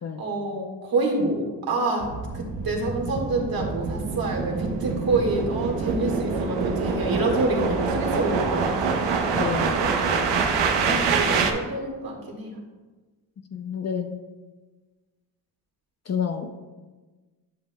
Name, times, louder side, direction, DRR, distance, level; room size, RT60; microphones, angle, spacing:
voice 1, 0.2-10.5 10.8-12.6, right 2 dB, 50° right, -1 dB, 1.9 m, -27 dB
sound 1, 2.0-11.5, right 5 dB, 70° right, 0.9 m, -26 dB
voice 2, 9.4-9.8 13.5-14.2 16.1-16.5, left 7 dB, 35° left, 7 dB, 0.5 m, -29 dB
10.5 x 5.4 x 2.3 m, 1.3 s
supercardioid pair, 70°, 44 cm